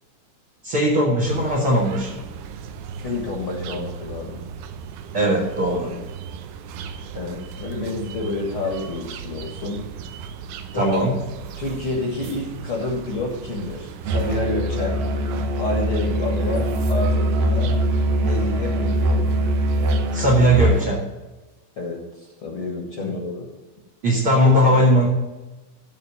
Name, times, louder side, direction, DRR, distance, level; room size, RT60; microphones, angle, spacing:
voice 1, 0.6-2.2 5.1-6.0 10.7-11.2 20.1-21.0 23.0-23.1 24.0-25.1, equal, 40° right, -2 dB, 2.1 m, -19 dB
sound 1, 1.3-20.9, right 6 dB, 80° right, 2.4 m, -37 dB
voice 2, 3.0-4.4 7.1-9.8 10.7-11.0 11.6-15.0 15.6-17.8 18.2-19.3 21.8-23.5, left 3 dB, 45° left, -1 dB, 2.1 m, -29 dB
Musical instrument, 14.0-21.0, equal, 65° right, 2.0 m, -22 dB
13.0 x 4.4 x 7.2 m, 1.1 s
omnidirectional pair, 4.2 m